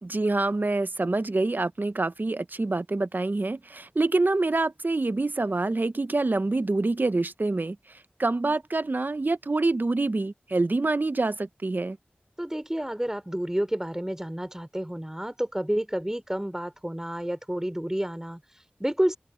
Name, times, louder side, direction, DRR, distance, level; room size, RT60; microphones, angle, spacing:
voice 1, 0.0-12.0, right 2 dB, 55° right, 0.8 m, -26 dB
voice 2, 12.4-19.2, equal, 15° right, 3.6 m, -30 dB
open air
wide cardioid pair, 40°, 4 cm